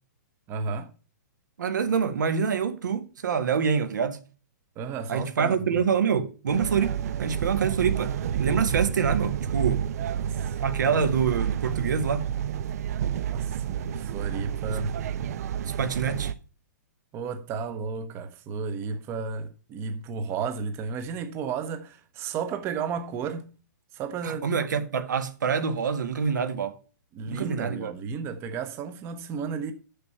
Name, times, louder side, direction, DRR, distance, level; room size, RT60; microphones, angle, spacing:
voice 1, 0.5-0.9 4.8-5.5 10.2-10.6 13.3-15.0 17.1-23.5 23.9-24.5 27.1-29.7, right 5 dB, 25° right, 0.9 m, -33 dB
voice 2, 1.6-4.2 5.1-8.1 8.4-9.9 10.6-12.3 14.7-14.8 15.8-16.3 24.2-26.8 27.3-27.9, right 6 dB, 80° right, 1.7 m, -26 dB
sound 1, 6.5-16.3, right 8 dB, 55° right, 0.7 m, -29 dB
6.8 x 6.7 x 7.0 m
hypercardioid pair, 145°, 10 cm